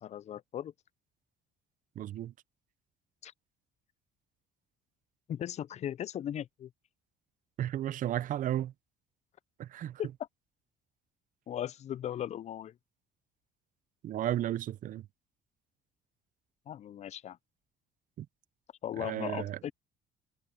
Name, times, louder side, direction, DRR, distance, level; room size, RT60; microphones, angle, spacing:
voice 1, 0.0-0.7 3.2-3.3 5.3-6.7 10.0-10.1 11.5-12.7 16.7-17.4 18.8-19.7, left 10 dB, 40° left, 0.4 m, -37 dB
voice 2, 2.0-2.3 7.6-8.7 9.6-10.0 14.0-15.0 18.2-18.3 19.0-19.6, right 12 dB, 50° right, 0.5 m, -33 dB
cardioid pair, 110°, 17 cm